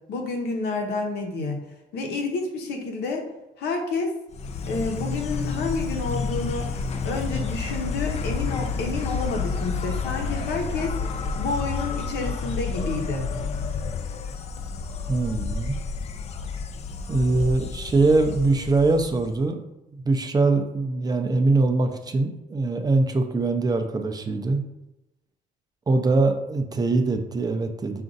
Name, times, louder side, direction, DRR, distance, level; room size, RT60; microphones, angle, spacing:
voice 1, 0.1-1.6 1.9-3.3 3.6-4.1 4.7-6.7 7.0-10.9 11.4-13.3, left 3 dB, 75° left, 2 dB, 1.0 m, -29 dB
Insect, 4.3-19.4, left 5 dB, 40° left, 0.4 m, -30 dB
voice 2, 15.1-15.8 17.1-19.6 19.9-24.6 25.9-28.0, right 3 dB, 25° right, 5 dB, 0.5 m, -22 dB
5.0 x 2.6 x 3.8 m, 0.95 s
cardioid pair, 110°, 17 cm